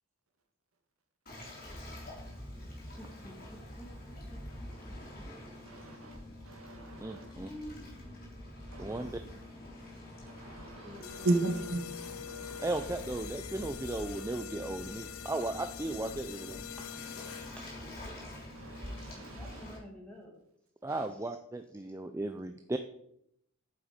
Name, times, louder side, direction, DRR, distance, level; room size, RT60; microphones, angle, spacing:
Waves surf, 1.3-19.8, left 1 dB, 45° left, 3.8 m, -46 dB
voice 1, 3.0-5.3 6.0-6.1 7.2-8.3 9.3-9.4 10.8-11.7 16.8-17.0 17.5-17.9 19.1-20.4 21.1-21.2, equal, 5° left, -1 dB, 2.4 m, -50 dB
voice 2, 5.6-6.2 6.4-7.3 8.7-9.1 10.2-12.9 18.5-19.6 20.9-21.1, right 2 dB, 85° right, 4 dB, 1.8 m, -36 dB
voice 3, 7.0-7.5 8.8-9.2 12.6-16.6 20.8-22.8, right 2 dB, 15° right, 7 dB, 0.4 m, -36 dB
sound 1, 11.0-17.8, left 10 dB, 80° left, 0.5 m, -45 dB
8.8 x 7.3 x 5.1 m, 0.74 s
head